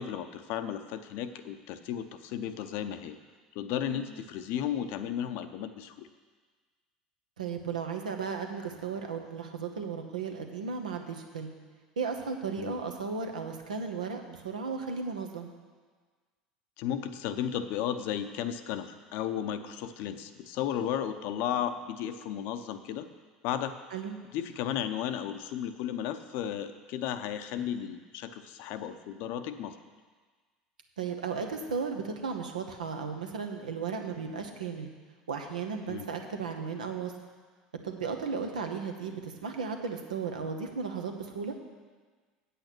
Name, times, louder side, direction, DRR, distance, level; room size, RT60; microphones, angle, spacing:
voice 1, 0.0-3.2 3.5-6.1 12.6-12.8 16.8-23.1 23.4-23.8 24.3-29.8 35.9-36.1, left 9 dB, 55° left, 10 dB, 0.7 m, -34 dB
voice 2, 7.4-11.5 12.0-15.5 23.9-24.2 31.0-34.9 35.3-37.1 37.8-41.6, right 5 dB, 80° right, 4 dB, 1.0 m, -35 dB
8.5 x 8.4 x 6.0 m, 1.5 s
figure-of-eight pair, 70°, 4 cm